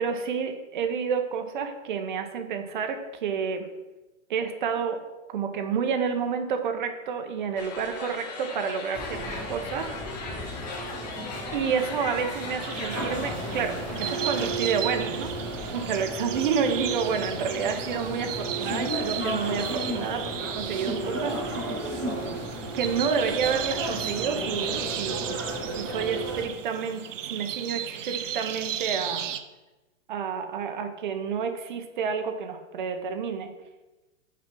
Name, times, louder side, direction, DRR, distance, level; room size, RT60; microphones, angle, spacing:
voice 1, 0.0-3.7 4.3-5.0 5.3-10.0 10.3-10.4 11.5-15.3 15.7-21.8 22.7-25.4 25.8-29.3 30.1-33.5, right 6 dB, 40° right, 6 dB, 0.8 m, -29 dB
sound 1, 7.6-15.7, left 4 dB, 30° left, 0.7 m, -39 dB
sound 2, 8.9-26.4, right 1 dB, 5° right, 0.4 m, -34 dB
sound 3, 12.6-29.4, right 10 dB, 70° right, 0.7 m, -35 dB
5.9 x 4.8 x 6.0 m, 1.1 s
hypercardioid pair, 170°, 39 cm